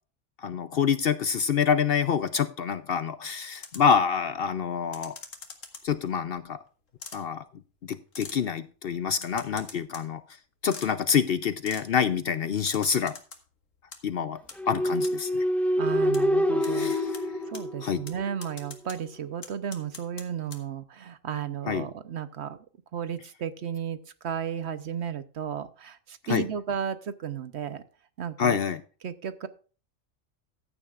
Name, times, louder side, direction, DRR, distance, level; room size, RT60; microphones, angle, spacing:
voice 1, 0.4-5.2 5.8-6.6 7.1-7.4 7.8-10.2 10.6-13.2 14.0-14.4 14.7-15.5 16.6-17.2 17.8-18.0 21.7-21.9 26.2-26.4 28.4-28.8, left 7 dB, 60° left, 13 dB, 0.7 m, -27 dB
sound 1, 3.6-4.0 4.9-6.0 7.0-7.2 8.1-8.4 9.2-10.1 10.7-10.9 11.7-11.9 12.7-13.4 13.7-14.0 14.5-14.6 15.0-15.1 16.1-16.2 16.6-16.7 17.1-17.2 17.5-17.6 18.1-18.2 18.4-19.0 19.4-20.2 20.5-20.6, left 5 dB, 75° left, 2.0 m, -42 dB
sound 2, 14.6-18.4, equal, ahead, 0.9 m, -26 dB
voice 2, 15.8-22.6 22.9-24.0 24.2-27.8 28.2-28.6 29.0-29.5, right 8 dB, 60° right, 13 dB, 1.0 m, -34 dB
14.5 x 9.8 x 2.4 m, 0.38 s
omnidirectional pair, 1.3 m